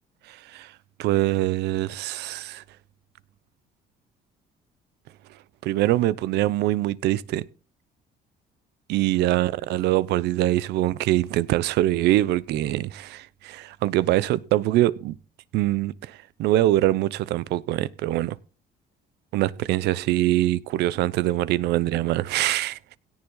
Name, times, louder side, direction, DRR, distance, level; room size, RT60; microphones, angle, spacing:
voice 1, 0.3-0.7 1.0-2.6 5.6-7.4 8.9-15.1 15.5-18.4 19.3-22.8, right 15 dB, 80° right, 0.8 m, -23 dB
17.0 x 7.1 x 3.9 m
cardioid pair, 110°, 17 cm